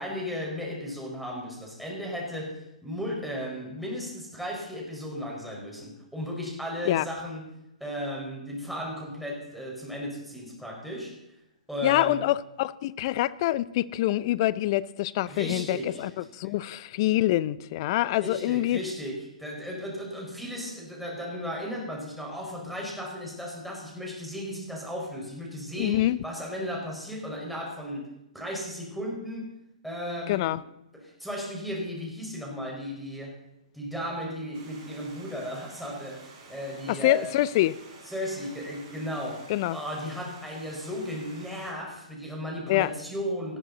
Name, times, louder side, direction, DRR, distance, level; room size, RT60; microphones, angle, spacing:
voice 1, 0.0-11.2 11.7-12.2 15.3-16.6 18.2-28.1 28.3-29.5 29.8-30.6 30.9-33.4 33.7-37.3 38.1-39.4 39.7-43.6, equal, ahead, -2 dB, 5.1 m, -35 dB
voice 2, 11.8-18.8 25.8-26.2 30.3-30.6 36.9-37.8 39.5-39.8 42.7-42.9, left 15 dB, 40° left, 19 dB, 0.6 m, -25 dB
Stream, 34.5-41.7, right 3 dB, 40° right, 6.3 m, -50 dB
18.5 x 14.0 x 4.1 m, 0.89 s
figure-of-eight pair, 125°, 4 cm